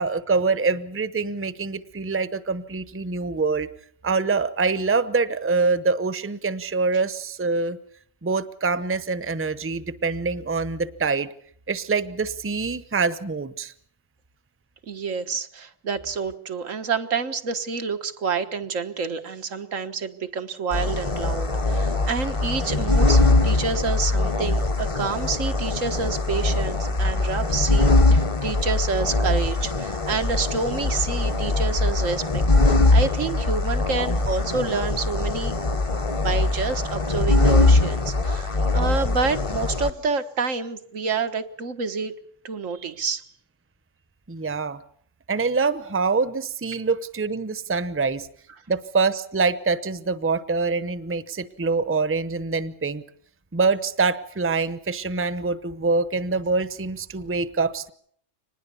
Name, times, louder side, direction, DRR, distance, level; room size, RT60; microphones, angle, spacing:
voice 1, 0.0-3.7 4.0-7.8 8.2-11.3 11.7-13.7 44.3-44.8 45.3-48.3 48.7-53.0 53.5-57.9, right 4 dB, 15° right, 14 dB, 0.7 m, -25 dB
voice 2, 14.9-35.5 36.2-42.1 42.4-43.2, right 5 dB, 85° right, 8 dB, 1.8 m, -28 dB
sound 1, 20.7-39.9, left 2 dB, 30° left, 0.9 m, -22 dB
25.0 x 20.0 x 7.0 m, 0.64 s
omnidirectional pair, 1.3 m